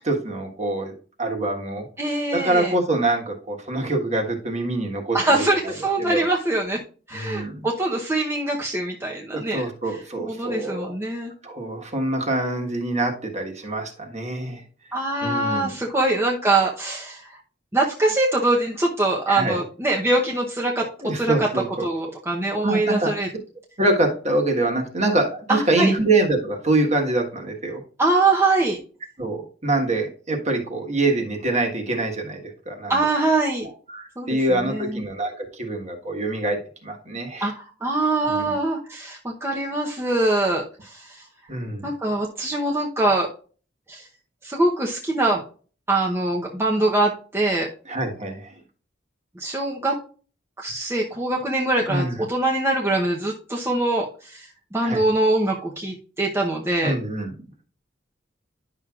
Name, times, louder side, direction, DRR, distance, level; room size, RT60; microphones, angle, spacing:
voice 1, 0.1-0.9 1.2-1.9 2.3-5.2 5.6-6.3 7.1-7.7 9.3-10.9 11.4-14.6 15.2-15.7 19.3-19.6 20.8-21.8 22.6-23.1 23.8-27.8 29.2-33.0 33.9-37.5 38.2-38.5 41.5-41.9 47.9-48.5 51.9-52.2 54.8-55.0 56.8-57.3, right 2 dB, 35° right, 2 dB, 1.5 m, -25 dB
voice 2, 2.0-2.7 5.1-6.8 7.1-11.3 14.9-17.3 17.7-20.9 21.1-23.3 25.5-25.9 28.0-28.8 32.9-33.7 34.2-35.0 37.4-41.2 41.8-43.3 43.9-44.1 44.4-45.4 45.9-47.7 49.4-50.0 50.6-56.9, right 2 dB, 15° right, -2 dB, 0.8 m, -23 dB
10.5 x 6.1 x 2.4 m, 0.40 s
head